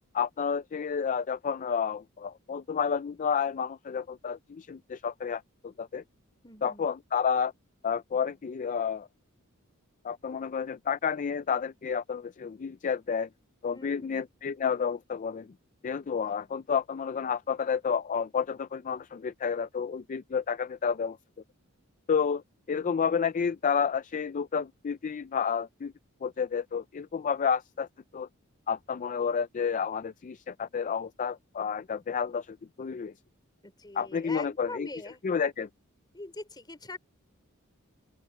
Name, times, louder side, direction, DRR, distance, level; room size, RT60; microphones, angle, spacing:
voice 1, 0.1-6.0 6.6-7.5 7.8-9.1 10.0-13.3 13.6-15.5 15.8-21.2 22.1-22.4 22.7-25.9 26.2-27.9 28.1-28.3 28.7-33.1 34.0-34.9 35.2-35.7, left 6 dB, 35° left, 0.4 m, -30 dB
voice 2, 6.4-6.9 13.7-14.2 16.3-16.4 33.6-35.2 36.1-37.0, left 2 dB, 20° left, 3.9 m, -43 dB
open air
head